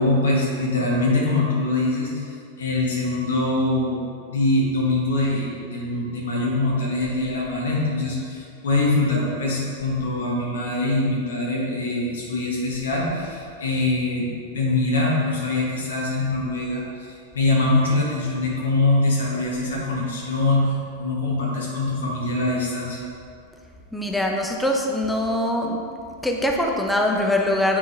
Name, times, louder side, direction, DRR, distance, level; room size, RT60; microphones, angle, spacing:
voice 1, 0.0-4.0 4.3-14.3 14.5-16.8 17.1-23.0, left 2 dB, 65° left, -3 dB, 1.6 m, -23 dB
voice 2, 23.9-25.8 26.2-27.8, left 1 dB, ahead, 0 dB, 0.8 m, -23 dB
9.5 x 4.4 x 3.4 m, 2.4 s
figure-of-eight pair, 90°, 0 cm